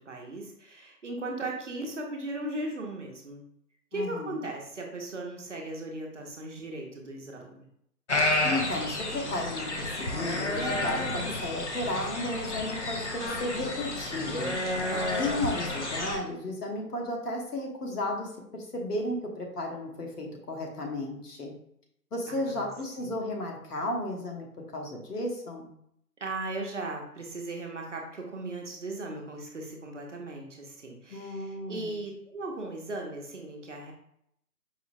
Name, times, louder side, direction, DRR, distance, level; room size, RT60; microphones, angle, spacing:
voice 1, 0.0-3.4 3.9-7.7 14.9-15.2 22.3-22.7 23.0-23.1 26.2-33.9, right 2 dB, 50° right, 0 dB, 0.7 m, -37 dB
voice 2, 3.9-4.5 8.4-14.6 15.2-21.5 22.1-24.5 24.7-25.7 31.1-32.0, left 1 dB, 70° left, 0 dB, 1.1 m, -34 dB
sound 1, 8.1-16.2, left 2 dB, 50° left, 0.4 m, -30 dB
4.8 x 2.0 x 2.6 m, 0.73 s
hypercardioid pair, 170°, 48 cm